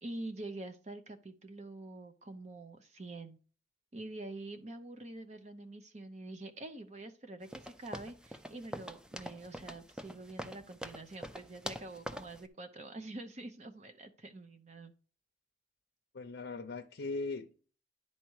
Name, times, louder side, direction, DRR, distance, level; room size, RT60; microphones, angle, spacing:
voice 1, 0.0-3.4 3.9-14.9, right 2 dB, 40° right, 0.7 m, -46 dB
sound 1, 7.5-12.4, equal, 5° right, 0.3 m, -45 dB
voice 2, 16.1-17.6, left 3 dB, 70° left, 0.6 m, -39 dB
10.5 x 4.2 x 4.7 m
head